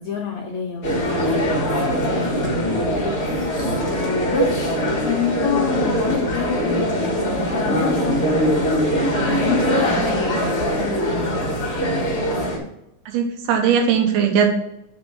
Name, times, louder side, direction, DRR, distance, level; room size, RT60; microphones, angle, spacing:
voice 1, 0.0-2.7 3.8-6.9 7.2-8.9 9.2-11.4, left 7 dB, 85° left, 1 dB, 1.6 m, -28 dB
sound 1, 0.8-12.6, equal, 55° left, 0.6 m, -22 dB
voice 2, 13.1-14.5, right 7 dB, 85° right, 3 dB, 3.0 m, -19 dB
7.7 x 4.4 x 5.8 m, 0.85 s
omnidirectional pair, 4.4 m